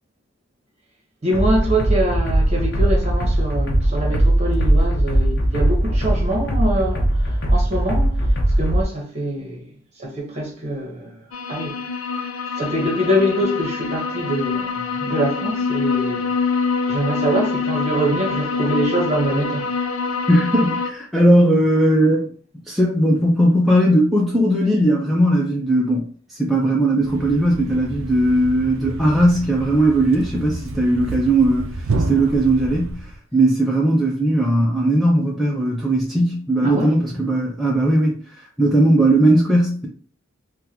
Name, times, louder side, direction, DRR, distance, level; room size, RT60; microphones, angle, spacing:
voice 1, 1.2-8.2 8.6-9.7 10.0-11.1 11.5-11.8 12.6-16.3 16.9-19.7 36.6-36.9, right 1 dB, 30° right, 1.0 m, -24 dB
sound 1, 1.3-8.8, right 1 dB, 50° left, 0.8 m, -19 dB
sound 2, 11.3-20.9, left 4 dB, 75° left, 0.4 m, -25 dB
voice 2, 20.3-22.3 22.7-31.8 32.1-33.1 33.3-38.2 38.6-39.9, right 1 dB, ahead, 0.5 m, -18 dB
Thump thud, 27.0-33.2, right 2 dB, 70° right, 0.4 m, -29 dB
3.7 x 2.2 x 2.8 m
head